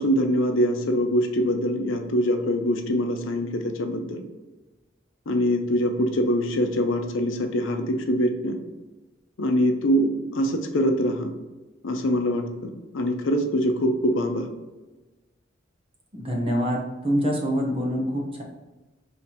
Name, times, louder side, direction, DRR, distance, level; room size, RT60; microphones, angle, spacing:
voice 1, 0.0-4.2 5.3-8.6 9.4-11.3 11.8-14.5, equal, 85° left, 5 dB, 0.6 m, -24 dB
voice 2, 16.1-18.4, equal, 30° right, -1 dB, 0.9 m, -25 dB
3.2 x 2.8 x 4.1 m, 1.1 s
head